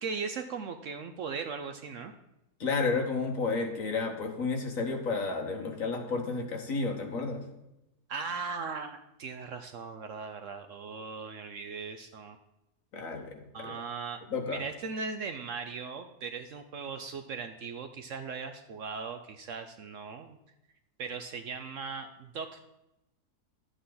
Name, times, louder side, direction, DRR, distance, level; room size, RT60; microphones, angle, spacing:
voice 1, 0.0-2.1 8.1-12.4 13.5-14.2 14.5-20.4 21.0-22.6, right 5 dB, 65° right, 8 dB, 0.8 m, -38 dB
voice 2, 2.6-7.4 12.9-13.8 14.3-14.6, left 4 dB, 55° left, 3 dB, 1.6 m, -31 dB
12.0 x 8.1 x 3.9 m, 0.91 s
omnidirectional pair, 1.7 m